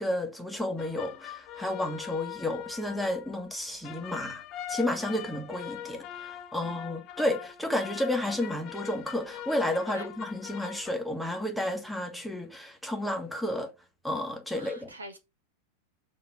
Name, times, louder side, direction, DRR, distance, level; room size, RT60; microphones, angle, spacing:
voice 1, 0.0-4.4 4.7-13.7 14.0-14.9, left 1 dB, ahead, 1.4 m, -31 dB
sound 1, 0.8-10.9, left 11 dB, 35° left, 1.0 m, -42 dB
voice 2, 14.5-15.2, right 1 dB, 75° right, 1.5 m, -44 dB
7.2 x 3.0 x 5.7 m
figure-of-eight pair, 90°, 0 cm